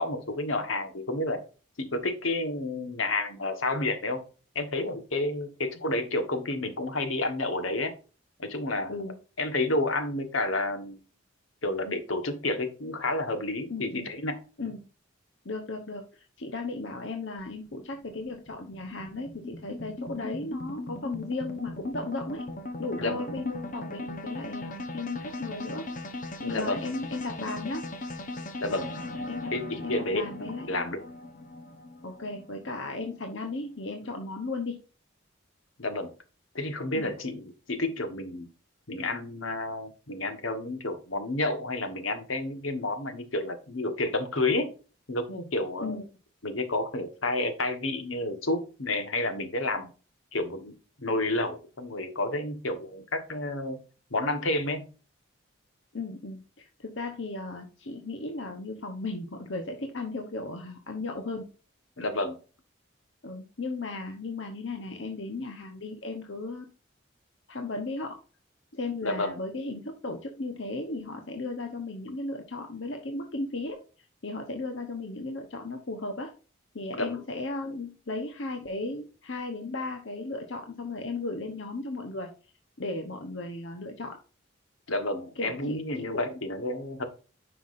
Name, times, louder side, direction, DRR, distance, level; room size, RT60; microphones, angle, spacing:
voice 1, 0.0-1.4 1.8-4.2 4.5-7.9 8.4-9.0 9.4-11.0 11.6-14.4 23.0-23.4 26.5-26.8 28.6-28.9 29.5-31.0 35.8-36.1 36.5-38.5 38.9-44.7 45.1-46.0 46.4-49.9 50.3-53.8 54.1-54.9 62.0-62.4 69.0-69.4 76.9-77.2 84.9-87.0, left 2 dB, 85° left, 7 dB, 1.4 m, -30 dB
voice 2, 13.7-14.1 14.6-14.8 15.4-22.4 22.8-25.8 26.4-27.9 29.3-29.5 29.8-30.7 32.0-34.8 36.9-37.1 45.8-46.0 55.9-61.5 63.2-66.6 67.5-68.2 68.7-73.8 74.2-76.3 76.7-82.3 82.8-84.2 85.4-86.4, left 2 dB, 70° left, 4 dB, 1.0 m, -35 dB
sound 1, 17.4-33.8, left 2 dB, 40° left, 1.0 m, -39 dB
9.6 x 5.8 x 2.6 m, 0.35 s
head